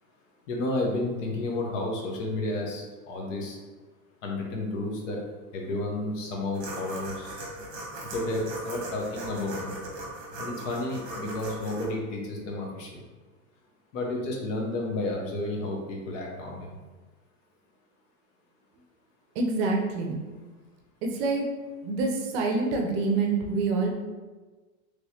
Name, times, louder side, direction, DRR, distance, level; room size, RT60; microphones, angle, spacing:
voice 1, 0.5-3.6 4.2-5.2 5.5-7.3 8.1-9.7 10.4-13.0 13.9-16.7, left 2 dB, 60° left, 0 dB, 0.9 m, -31 dB
sound 1, 6.5-11.9, right 1 dB, 30° right, 1.0 m, -38 dB
voice 2, 19.4-20.2 21.0-21.5 21.8-24.0, right 3 dB, 45° right, 1 dB, 0.6 m, -26 dB
3.1 x 3.0 x 2.8 m, 1.3 s
supercardioid pair, 140°, 42 cm